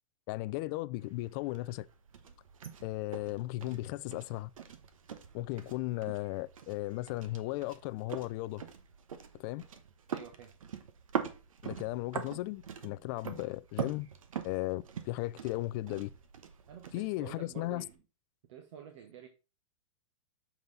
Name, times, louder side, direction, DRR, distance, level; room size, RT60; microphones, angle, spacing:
voice 1, 0.3-1.9 2.8-4.5 5.3-8.6 9.3-9.6 11.6-14.1 14.4-16.1 16.9-17.8, left 19 dB, 40° left, 0.3 m, -36 dB
sound 1, 1.0-18.0, right 7 dB, 90° right, 1.0 m, -44 dB
voice 2, 10.1-10.5 16.7-18.0 18.5-19.3, right 9 dB, 60° right, 1.2 m, -49 dB
7.0 x 4.0 x 4.0 m
hypercardioid pair, 135°, 17 cm